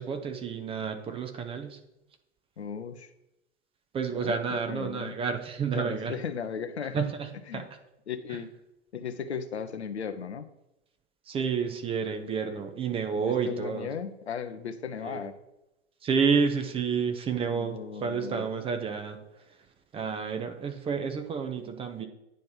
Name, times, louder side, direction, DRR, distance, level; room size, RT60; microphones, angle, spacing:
voice 1, 0.0-1.8 3.9-6.1 6.9-7.6 8.3-8.4 11.3-13.9 15.0-15.3 16.0-19.2 19.9-22.1, right 6 dB, 15° right, 6 dB, 0.7 m, -30 dB
voice 2, 2.6-3.1 4.1-5.2 5.7-7.0 7.5-7.6 8.1-8.5 8.9-10.5 13.1-15.4 17.3-18.5, left 7 dB, 75° left, 10 dB, 0.8 m, -36 dB
9.3 x 3.2 x 5.6 m, 0.91 s
figure-of-eight pair, 95°, 33 cm